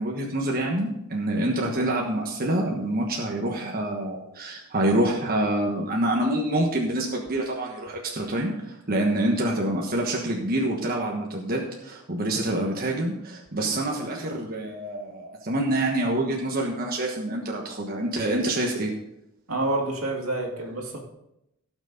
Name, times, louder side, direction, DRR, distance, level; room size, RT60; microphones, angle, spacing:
voice 1, 0.0-18.9, right 1 dB, 45° right, -1 dB, 1.3 m, -26 dB
voice 2, 19.5-21.0, right 2 dB, 80° right, 0 dB, 2.4 m, -28 dB
17.0 x 6.2 x 4.0 m, 0.83 s
head